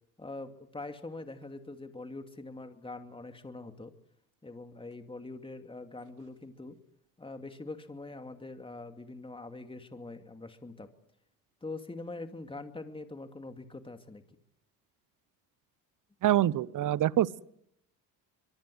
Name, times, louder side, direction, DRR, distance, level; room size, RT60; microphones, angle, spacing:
voice 1, 0.2-3.9 4.4-6.8 7.2-10.9 11.6-14.2, left 2 dB, 10° left, 2.5 m, -43 dB
voice 2, 16.2-17.4, right 12 dB, 45° right, 0.9 m, -26 dB
24.5 x 23.0 x 7.9 m
supercardioid pair, 80°, 43 cm